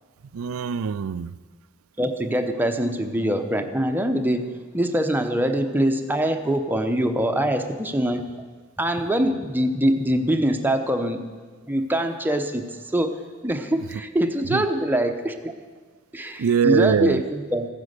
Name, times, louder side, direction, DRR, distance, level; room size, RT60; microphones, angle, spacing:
voice 1, 0.2-1.4 14.5-14.7 16.4-17.2, right 6 dB, 80° right, 17 dB, 0.4 m, -23 dB
voice 2, 2.0-8.3 8.8-11.3 11.7-13.2 13.4-15.5 16.1-17.7, right 1 dB, 10° right, 5 dB, 0.8 m, -24 dB
15.5 x 9.5 x 6.6 m, 1.5 s
head